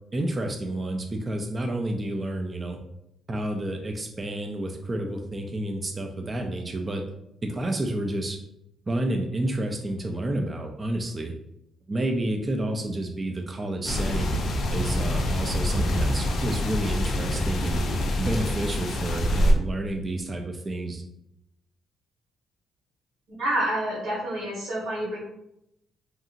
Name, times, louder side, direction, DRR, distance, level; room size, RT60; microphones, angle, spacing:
voice 1, 0.1-2.8 3.3-7.0 7.4-8.4 8.9-11.3 11.9-14.4 14.7-17.8 18.2-21.0, right 1 dB, 25° right, 3 dB, 0.3 m, -30 dB
sound 1, 13.8-19.5, left 1 dB, 55° left, 0.4 m, -25 dB
voice 2, 23.4-25.2, right 1 dB, 75° right, -8 dB, 1.2 m, -28 dB
2.8 x 2.5 x 2.4 m, 0.82 s
cardioid pair, 115°, 0 cm